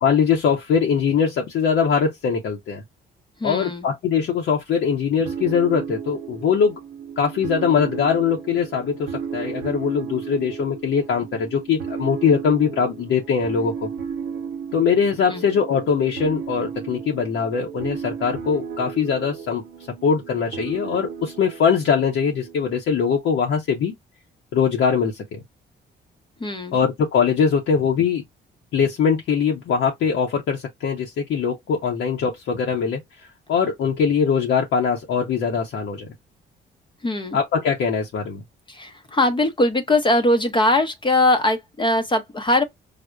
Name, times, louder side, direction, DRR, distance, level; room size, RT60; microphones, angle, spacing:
voice 1, 0.0-2.8 3.4-6.8 7.2-13.9 14.7-19.6 20.0-23.9 24.5-25.4 26.7-28.2 28.7-33.0 33.5-36.1 37.3-38.4, left 6 dB, 70° left, 0.8 m, -22 dB
voice 2, 3.4-3.9 15.3-15.5 26.4-26.8 37.0-37.4 38.7-42.6, left 1 dB, 25° left, 0.6 m, -21 dB
sound 1, 5.2-22.7, right 7 dB, 75° right, 0.8 m, -34 dB
5.0 x 2.0 x 2.2 m
cardioid pair, 90°, 20 cm